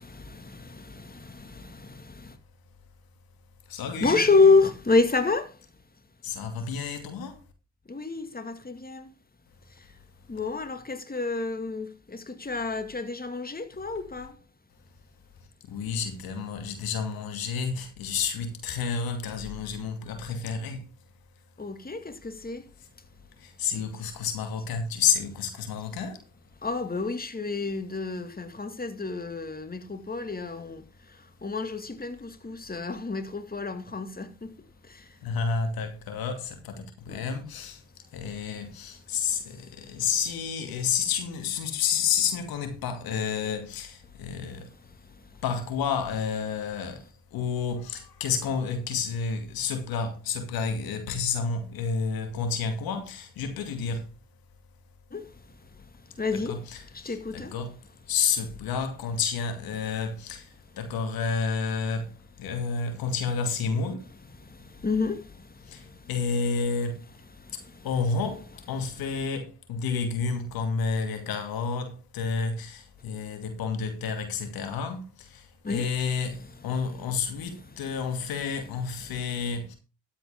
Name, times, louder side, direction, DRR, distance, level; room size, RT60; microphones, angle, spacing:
voice 1, 0.0-2.4 4.0-5.7 7.9-9.1 9.7-9.9 10.3-14.4 21.6-22.7 26.6-34.6 34.8-35.2 37.1-37.3 45.0-45.4 55.1-56.6 56.9-57.5 64.4-66.1 67.4-67.9 75.6-75.9, left 3 dB, 25° left, 2.2 m, -29 dB
voice 2, 3.7-4.2 6.2-7.3 15.7-20.8 23.4-26.2 35.2-37.8 38.1-44.7 45.4-47.0 47.3-54.1 56.5-57.8 58.1-60.4 60.8-62.1 62.4-64.0 65.7-65.8 66.1-67.0 67.8-75.0 75.7-79.8, left 5 dB, 80° left, 2.5 m, -30 dB
13.0 x 8.5 x 3.6 m
hypercardioid pair, 45°, 36 cm